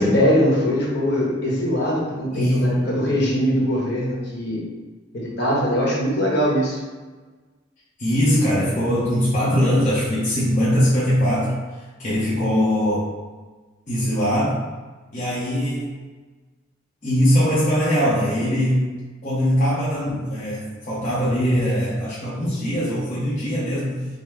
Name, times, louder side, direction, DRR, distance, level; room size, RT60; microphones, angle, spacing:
voice 1, 0.0-4.6 5.1-6.8, equal, 55° left, -4 dB, 1.1 m, -21 dB
voice 2, 2.3-2.9 8.0-13.1 13.9-14.6 15.1-15.9 17.0-18.8 19.2-24.1, equal, 40° left, -9 dB, 0.8 m, -21 dB
5.5 x 2.1 x 3.3 m, 1.3 s
head